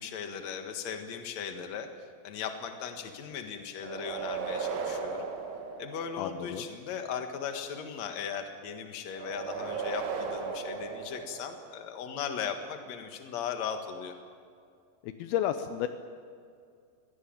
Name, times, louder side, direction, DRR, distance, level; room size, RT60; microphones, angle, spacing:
voice 1, 0.0-1.9 2.2-5.3 5.8-14.1, left 7 dB, 55° left, 6 dB, 2.1 m, -37 dB
sound 1, 3.8-6.5 9.1-11.9, right 5 dB, 75° right, 4.3 m, -36 dB
voice 2, 6.2-6.6 15.0-15.9, left 11 dB, 85° left, 9 dB, 2.1 m, -32 dB
23.0 x 17.0 x 8.9 m, 2.3 s
omnidirectional pair, 5.4 m